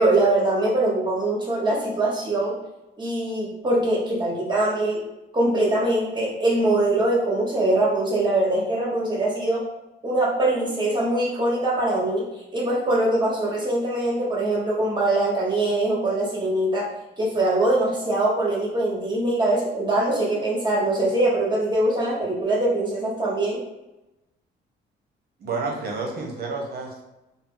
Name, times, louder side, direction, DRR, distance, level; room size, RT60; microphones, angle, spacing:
voice 1, 0.0-2.6 3.0-5.0 5.3-9.6 10.0-23.6, right 2 dB, 20° right, -5 dB, 1.2 m, -23 dB
voice 2, 25.4-27.0, right 3 dB, 55° right, 1 dB, 0.8 m, -30 dB
2.7 x 2.0 x 3.7 m, 0.97 s
cardioid pair, 90°, 20 cm